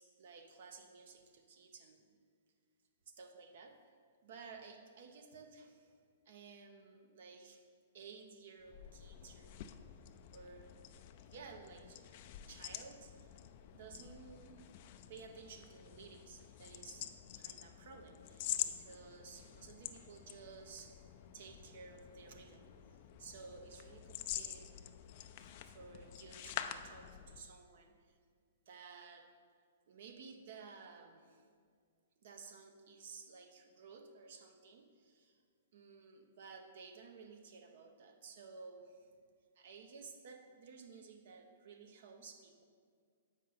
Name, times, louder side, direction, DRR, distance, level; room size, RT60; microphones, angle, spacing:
voice 1, 0.0-2.2 3.1-3.8 4.2-6.0 6.3-7.6 7.9-9.5 10.3-10.7 11.3-12.0 12.5-13.4 13.7-14.6 15.1-17.1 17.3-24.7 25.4-28.2 28.7-29.3 29.9-31.4 32.2-35.4 35.7-39.2 39.5-42.6, right 5 dB, 60° right, 5 dB, 0.8 m, -55 dB
sound 1, 8.6-27.5, left 11 dB, 45° left, 0.4 m, -47 dB
7.6 x 5.3 x 4.1 m, 2.1 s
hypercardioid pair, 135°, 0 cm